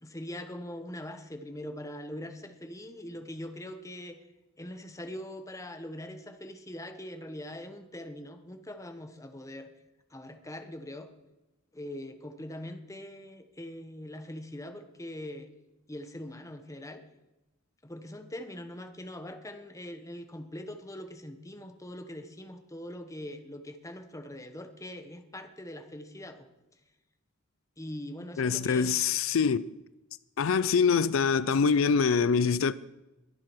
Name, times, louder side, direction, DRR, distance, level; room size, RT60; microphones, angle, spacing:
voice 1, 0.0-4.2 4.6-9.7 10.1-11.1 11.7-15.5 15.9-17.0 17.8-26.5 27.8-29.0, left 1 dB, 15° left, 1.2 m, -42 dB
voice 2, 28.4-29.7 30.4-32.7, left 5 dB, 75° left, 0.4 m, -24 dB
22.0 x 7.5 x 6.1 m
head